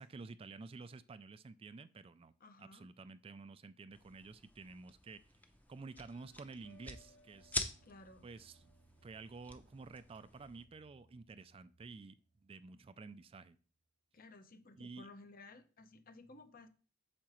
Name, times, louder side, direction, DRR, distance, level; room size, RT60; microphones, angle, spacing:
voice 1, 0.0-2.3 2.6-5.3 5.7-7.6 8.2-8.6 9.0-13.6 14.8-15.1, right 4 dB, 30° right, 14 dB, 0.3 m, -51 dB
voice 2, 2.4-2.9 7.8-8.3 14.1-16.7, left 2 dB, 50° left, 8 dB, 0.9 m, -56 dB
sound 1, 3.9-10.6, left 2 dB, 10° left, 0.7 m, -47 dB
sound 2, 5.9-13.0, right 1 dB, 70° left, 2.0 m, -68 dB
8.5 x 6.6 x 3.1 m, 0.37 s
head